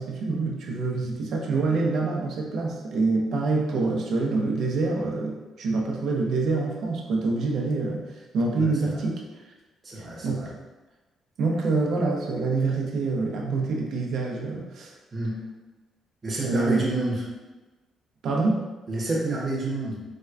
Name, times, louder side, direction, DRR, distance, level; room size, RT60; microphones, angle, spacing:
voice 1, 0.0-9.2 10.0-10.5 11.4-14.9 16.4-16.8 18.2-18.7, right 3 dB, 70° right, -1 dB, 0.6 m, -26 dB
voice 2, 8.6-9.0 9.8-10.5 15.1-15.4 16.2-17.2 18.9-20.0, right 2 dB, 35° right, -5 dB, 0.9 m, -29 dB
4.3 x 2.2 x 2.4 m, 1.2 s
cardioid pair, 90°, 0 cm